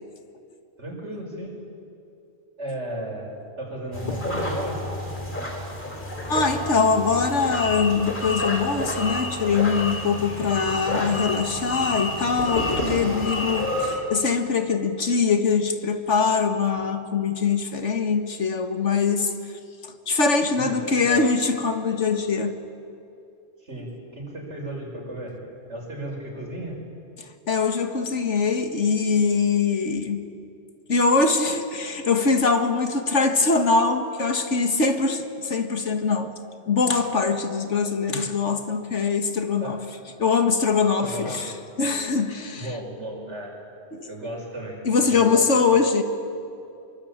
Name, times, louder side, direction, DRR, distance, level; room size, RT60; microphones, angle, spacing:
voice 1, 0.8-1.6 2.6-4.8 20.5-21.3 23.6-25.4 25.7-26.8 39.6-39.7 41.0-41.5 42.6-43.5 44.0-45.5, right 1 dB, 75° right, 0 dB, 6.1 m, -34 dB
sound 1, 3.9-14.0, left 1 dB, 45° left, 4.4 m, -29 dB
voice 2, 6.3-19.3 19.8-22.5 27.2-30.2 30.9-36.3 36.7-39.8 40.2-41.5 41.8-42.7 43.9-44.1 44.8-46.0, left 4 dB, 90° left, 7 dB, 2.1 m, -23 dB
25.5 x 23.0 x 8.9 m, 2.7 s
omnidirectional pair, 1.2 m